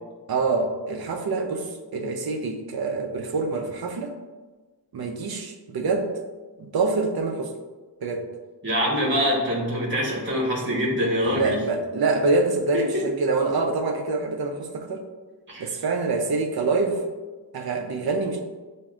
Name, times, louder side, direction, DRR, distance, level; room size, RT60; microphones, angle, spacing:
voice 1, 0.3-4.1 4.9-6.1 6.7-7.5 8.0-8.2 11.2-15.0 15.6-17.0 17.5-18.4, right 3 dB, 60° right, 2 dB, 0.6 m, -25 dB
voice 2, 8.6-11.6 12.7-13.0 15.5-15.7, equal, 25° right, -5 dB, 1.2 m, -24 dB
7.2 x 2.6 x 2.4 m, 1.3 s
wide cardioid pair, 160°, 43 cm